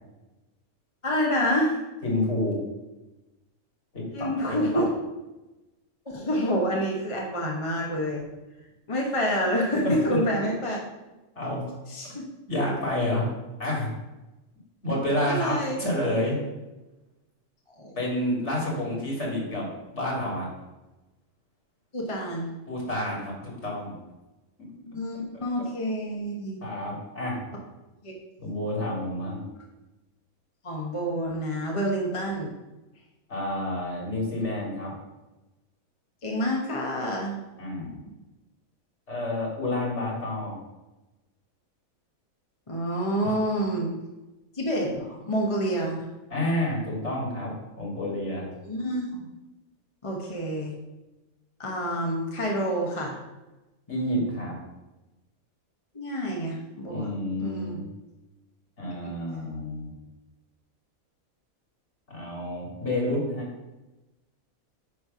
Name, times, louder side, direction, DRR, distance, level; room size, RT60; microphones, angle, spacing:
voice 1, 1.0-1.8 4.1-4.9 6.0-8.3 8.9-10.8 11.9-12.2 15.2-15.8 17.7-17.9 21.9-22.5 24.9-26.6 28.0-28.1 30.6-32.5 36.2-37.4 42.7-43.9 44.5-46.0 48.6-49.3 50.0-50.7 51.6-53.2 55.9-57.1 57.4-57.8 59.0-59.1, equal, 25° left, -2 dB, 1.0 m, -28 dB
voice 2, 2.0-2.6 3.9-4.8 9.8-10.2 11.4-11.8 12.5-13.2 13.6-13.9 14.8-16.4 18.0-20.5 22.7-24.0 26.6-27.4 28.4-29.4 33.3-34.9 37.6-37.9 39.1-40.6 43.2-43.4 46.3-47.5 47.8-48.5 53.9-54.6 56.9-57.8 58.8-59.9 62.1-63.5, left 1 dB, 50° left, -3 dB, 2.7 m, -29 dB
9.5 x 3.3 x 5.5 m, 1.1 s
omnidirectional pair, 1.5 m